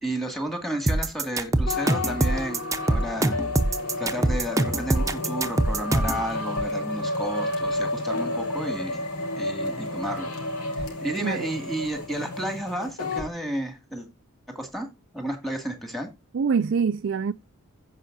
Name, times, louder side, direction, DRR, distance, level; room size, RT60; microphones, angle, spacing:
voice 1, 0.0-3.4 4.0-9.0 9.4-10.3 10.8-14.1 14.5-14.9 15.1-16.1, right 1 dB, ahead, 2.3 m, -32 dB
sound 1, 0.9-6.2, right 2 dB, 15° right, 0.8 m, -23 dB
sound 2, 1.7-13.3, left 2 dB, 80° left, 3.7 m, -31 dB
voice 2, 11.2-11.5 16.3-17.3, right 6 dB, 55° right, 0.4 m, -24 dB
16.0 x 5.6 x 2.7 m
head